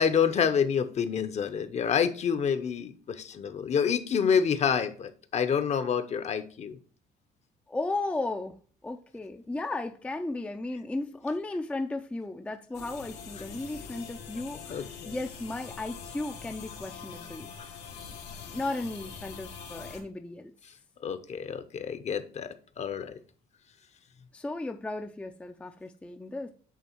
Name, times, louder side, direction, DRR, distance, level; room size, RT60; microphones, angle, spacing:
voice 1, 0.0-6.8 14.7-15.2 21.0-23.2, left 7 dB, 40° left, 0.7 m, -28 dB
voice 2, 7.7-8.6 8.8-17.8 18.5-20.5 24.3-26.5, left 2 dB, 10° left, 0.4 m, -35 dB
sound 1, 12.7-20.0, left 6 dB, 90° left, 1.5 m, -44 dB
8.4 x 3.4 x 4.4 m
cardioid pair, 110°, 17 cm